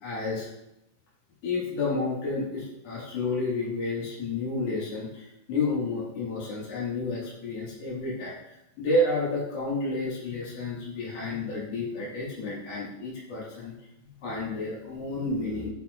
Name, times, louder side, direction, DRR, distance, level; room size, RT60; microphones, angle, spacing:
voice 1, 0.0-0.5 1.4-13.7 14.0-15.7, left 2 dB, 55° left, -7 dB, 3.0 m, -30 dB
6.3 x 5.8 x 2.5 m, 0.84 s
omnidirectional pair, 3.7 m